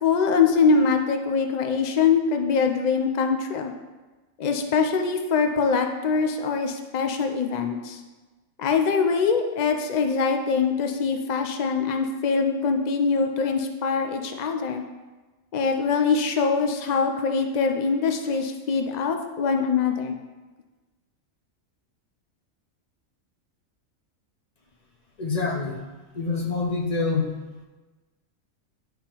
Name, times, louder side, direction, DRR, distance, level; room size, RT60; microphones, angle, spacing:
voice 1, 0.0-3.7 4.4-8.0 8.6-14.8 15.5-20.1, left 5 dB, 85° left, 5 dB, 0.3 m, -23 dB
voice 2, 25.2-25.8 26.1-27.3, left 4 dB, 35° left, 0 dB, 0.7 m, -26 dB
9.3 x 3.6 x 4.4 m, 1.2 s
omnidirectional pair, 1.4 m